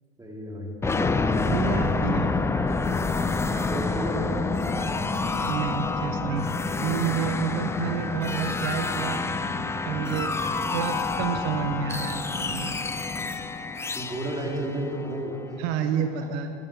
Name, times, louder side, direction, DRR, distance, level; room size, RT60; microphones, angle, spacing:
voice 1, 0.2-0.7 3.7-4.4 14.0-15.4, right 1 dB, 10° right, -2 dB, 3.5 m, -32 dB
sound 1, 0.8-15.5, left 3 dB, 5° left, 0.3 m, -28 dB
sound 2, 0.8-1.2 1.5-1.9 2.5-2.8 3.5-3.9 4.7-5.1 6.2-6.6 7.8-12.6, right 1 dB, 85° right, 3.3 m, -42 dB
voice 2, 1.5-2.3 5.4-6.5 6.8-9.2 9.8-10.4 10.7-12.7 15.6-16.5, right 8 dB, 70° right, 7 dB, 1.3 m, -29 dB
15.0 x 13.5 x 7.3 m, 2.7 s
supercardioid pair, 115°, 40 cm